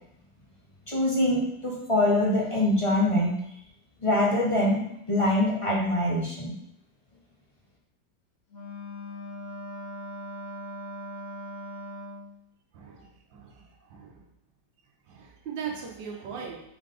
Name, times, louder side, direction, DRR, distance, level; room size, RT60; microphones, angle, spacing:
voice 1, 0.9-3.3 4.0-4.8 5.1-6.5, left 1 dB, 30° left, -3 dB, 0.6 m, -24 dB
Wind instrument woodwind instrument, 8.5-12.4, left 1 dB, 50° left, 1.5 m, -39 dB
voice 2, 12.7-14.2 15.1-16.6, right 6 dB, 85° right, -2 dB, 1.7 m, -39 dB
4.7 x 4.0 x 5.1 m, 0.77 s
omnidirectional pair, 2.0 m